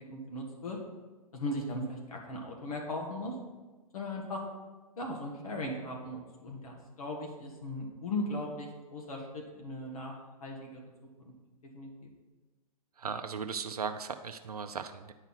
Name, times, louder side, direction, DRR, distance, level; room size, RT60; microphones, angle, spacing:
voice 1, 0.1-0.8 1.3-3.3 3.9-4.4 5.0-10.1 10.4-10.8 11.7-12.1, left 1 dB, 70° left, 0 dB, 1.9 m, -38 dB
voice 2, 13.0-15.1, right 6 dB, 85° right, 7 dB, 0.6 m, -37 dB
9.9 x 4.7 x 5.7 m, 1.3 s
figure-of-eight pair, 115°, 19 cm